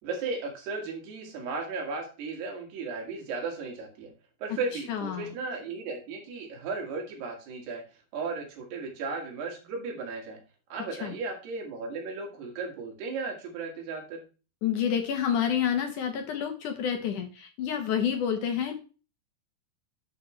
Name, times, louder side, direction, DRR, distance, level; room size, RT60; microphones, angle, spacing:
voice 1, 0.0-4.1 4.4-7.8 8.1-10.4 10.7-14.2, right 4 dB, 85° right, 0 dB, 4.2 m, -35 dB
voice 2, 4.9-5.3 11.0-11.1 14.6-18.7, left 8 dB, 65° left, 5 dB, 2.2 m, -29 dB
10.5 x 7.5 x 3.3 m, 0.34 s
omnidirectional pair, 4.5 m